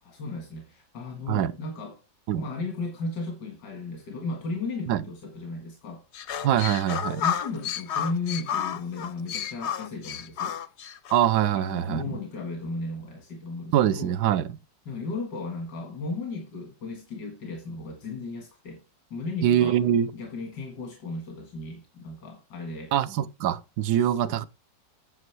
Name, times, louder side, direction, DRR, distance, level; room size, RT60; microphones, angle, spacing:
voice 1, 0.0-2.0 2.4-6.0 7.1-10.6 11.5-14.2 14.9-18.8 19.1-19.8 20.1-22.9 24.0-24.5, left 3 dB, 85° left, 2.4 m, -35 dB
sound 1, 6.1-11.2, left 9 dB, 65° left, 0.6 m, -31 dB
voice 2, 6.4-7.2 11.1-12.2 13.7-14.5 19.4-20.1 22.9-24.4, right 10 dB, 75° right, 1.1 m, -23 dB
9.6 x 6.1 x 4.7 m
omnidirectional pair, 1.8 m